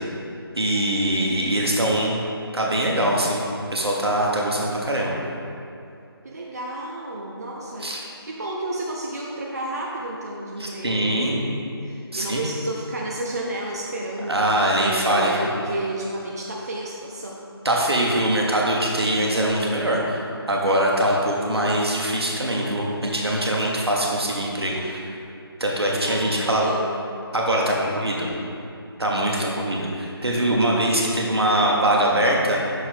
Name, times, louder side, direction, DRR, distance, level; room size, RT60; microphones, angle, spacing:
voice 1, 0.6-2.2 2.5-3.4 3.7-5.1 7.8-8.0 10.6-11.4 12.1-12.4 14.3-15.5 17.6-20.2 20.5-25.1 25.6-26.7 27.3-28.3 29.0-32.6, right 1 dB, 75° right, -2 dB, 1.3 m, -22 dB
voice 2, 1.1-1.7 6.2-17.4 26.0-27.0 28.9-29.0, right 1 dB, 40° right, -2 dB, 0.5 m, -32 dB
6.2 x 4.8 x 3.7 m, 2.6 s
figure-of-eight pair, 160°, 13 cm